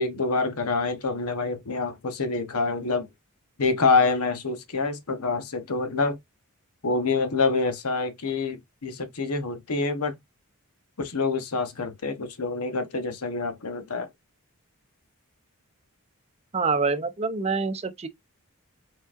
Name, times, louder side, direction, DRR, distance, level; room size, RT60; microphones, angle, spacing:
voice 1, 0.0-3.1 3.6-6.2 6.8-10.1 11.0-14.1, left 3 dB, 80° left, 1.0 m, -26 dB
voice 2, 16.5-18.1, right 4 dB, 30° right, 0.5 m, -26 dB
4.9 x 3.9 x 2.5 m
head